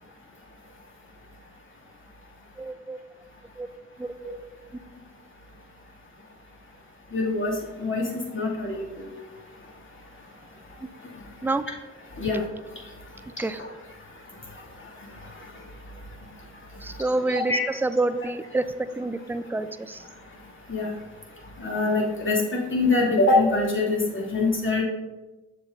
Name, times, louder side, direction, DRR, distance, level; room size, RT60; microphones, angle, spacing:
voice 1, 2.6-3.0 3.6-3.7 4.0-4.1 11.4-11.7 13.4-13.6 16.8-17.5 17.8-18.7 19.0-20.0, right 2 dB, 5° right, 12 dB, 0.4 m, -27 dB
voice 2, 7.1-8.0 8.3-9.1 12.1-12.4 13.6-13.7 15.1-15.5 17.3-17.6 20.7-20.9 21.6-24.8, left 2 dB, 35° left, -2 dB, 2.6 m, -24 dB
6.8 x 5.9 x 3.8 m, 1.1 s
hypercardioid pair, 40°, 36 cm